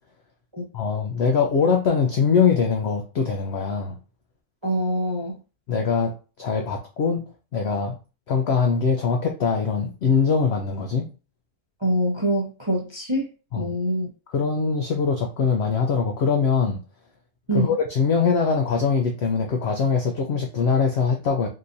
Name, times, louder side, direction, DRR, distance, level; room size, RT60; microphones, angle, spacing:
voice 1, 0.7-4.0 5.7-7.3 7.5-8.0 8.3-11.1 13.5-13.7 14.3-16.8 17.5-21.5, left 5 dB, 75° left, 3 dB, 0.6 m, -22 dB
voice 2, 4.6-5.3 11.8-13.3 13.5-14.1 17.5-17.7, right 1 dB, 30° right, -4 dB, 0.5 m, -24 dB
3.8 x 2.8 x 2.5 m, 0.33 s
omnidirectional pair, 1.6 m